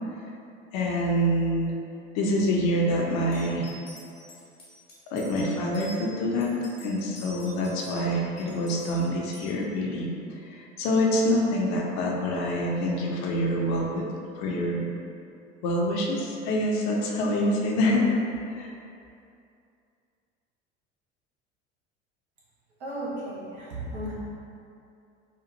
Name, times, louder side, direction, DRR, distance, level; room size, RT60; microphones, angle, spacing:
voice 1, 0.7-1.7 2.1-3.7 5.1-6.5 6.8-10.1 10.5-14.0 14.4-14.8 15.6-18.1 18.5-18.7, equal, 50° left, -1 dB, 0.6 m, -26 dB
sound 1, 3.3-6.0 6.4-8.1 8.4-9.5, left 1 dB, 90° left, 1.1 m, -47 dB
voice 2, 22.8-24.1, right 1 dB, 80° right, -7 dB, 1.0 m, -34 dB
4.3 x 2.4 x 2.6 m, 2.6 s
figure-of-eight pair, 65°, 34 cm